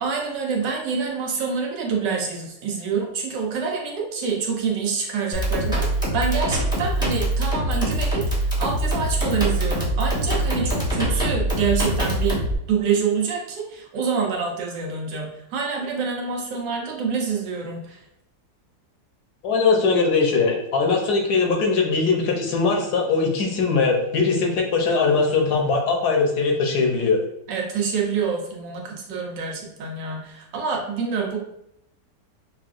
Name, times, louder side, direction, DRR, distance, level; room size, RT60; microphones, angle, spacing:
voice 1, 0.0-12.4 12.7-18.0 27.5-31.4, right 5 dB, 85° right, -1 dB, 1.5 m, -26 dB
sound 1, 5.3-12.5, right 1 dB, 5° right, 0.7 m, -23 dB
voice 2, 19.4-27.2, left 4 dB, 70° left, 1 dB, 1.2 m, -21 dB
5.6 x 2.4 x 2.5 m, 0.78 s
omnidirectional pair, 1.8 m